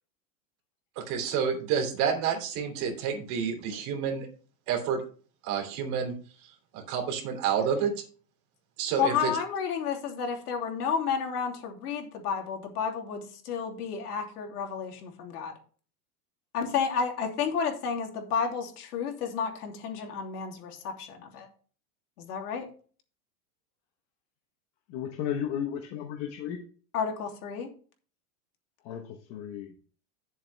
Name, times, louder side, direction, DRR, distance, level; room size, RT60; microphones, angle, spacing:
voice 1, 1.0-4.3 4.7-5.0 5.4-6.1 6.7-7.9 8.8-9.3, right 7 dB, 40° right, 2 dB, 3.0 m, -29 dB
voice 2, 9.0-15.5 16.5-21.5 22.2-22.7 26.9-27.7, left 6 dB, 90° left, 3 dB, 3.1 m, -31 dB
voice 3, 24.9-26.6 28.8-29.0 29.3-29.7, left 9 dB, 35° left, 3 dB, 1.2 m, -33 dB
11.0 x 7.3 x 3.4 m, 0.40 s
supercardioid pair, 165°, 44 cm